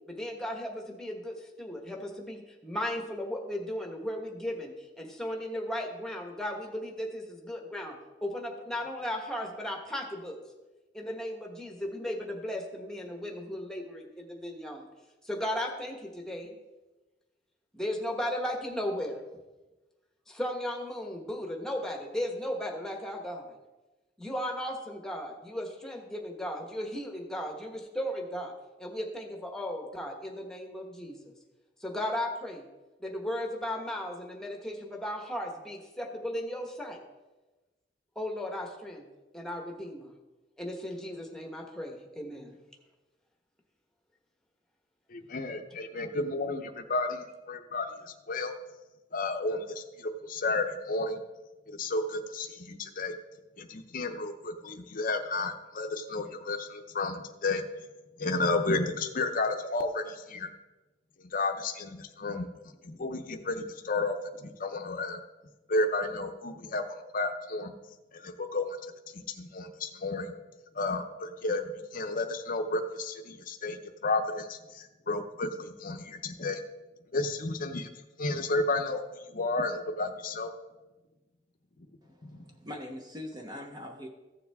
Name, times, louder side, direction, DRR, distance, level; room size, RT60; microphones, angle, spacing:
voice 1, 0.1-10.4 10.9-14.8 15.2-16.5 17.7-19.2 20.3-23.5 24.2-28.5 28.8-31.3 31.8-32.6 33.0-37.0 38.1-39.0 39.3-40.1 40.6-42.6, left 1 dB, 5° left, 1 dB, 1.2 m, -36 dB
voice 2, 45.1-48.5 49.1-51.2 51.7-53.1 53.6-57.6 58.2-60.5 61.3-62.5 62.8-64.2 64.4-65.2 65.7-66.8 67.1-67.7 68.1-68.8 69.1-70.3 70.7-76.6 77.1-77.9 78.2-79.0 79.3-80.5 82.3-82.4, left 2 dB, 50° left, 5 dB, 0.7 m, -32 dB
voice 3, 82.0-84.1, left 1 dB, 20° right, 2 dB, 0.9 m, -42 dB
14.5 x 7.1 x 3.5 m, 1.1 s
head